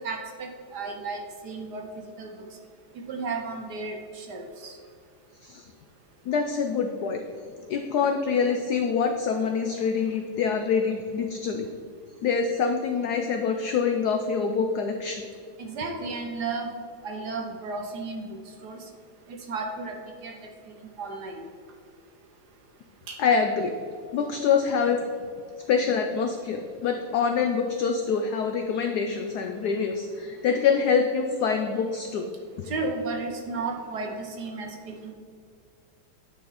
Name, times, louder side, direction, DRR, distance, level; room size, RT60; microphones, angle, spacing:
voice 1, 0.0-1.8 2.2-2.3 2.9-4.7 15.6-16.7 17.0-18.2 18.6-18.8 19.3-19.9 20.2-20.3 21.0-21.5 23.1-23.2 32.7-35.1, right 3 dB, 60° right, 2 dB, 1.2 m, -33 dB
voice 2, 6.3-7.2 7.7-11.7 12.2-15.2 23.2-23.7 24.1-25.0 25.7-32.3 32.6-32.7, left 6 dB, 80° left, 5 dB, 0.8 m, -25 dB
9.9 x 4.2 x 4.0 m, 2.2 s
omnidirectional pair, 2.3 m